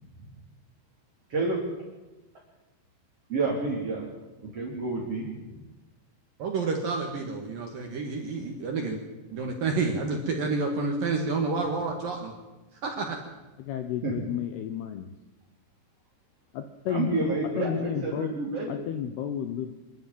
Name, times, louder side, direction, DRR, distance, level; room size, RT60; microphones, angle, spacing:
voice 1, 3.3-4.1 4.4-5.6 14.0-14.1 16.9-18.8, right 3 dB, 35° right, -3 dB, 4.0 m, -29 dB
voice 2, 6.4-9.0 9.3-12.3 12.8-13.2, right 4 dB, 60° right, 3 dB, 2.8 m, -29 dB
voice 3, 13.6-15.1 16.5-18.3 18.7-19.7, left 9 dB, 75° left, 9 dB, 2.4 m, -32 dB
25.5 x 12.5 x 9.4 m, 1.1 s
omnidirectional pair, 5.8 m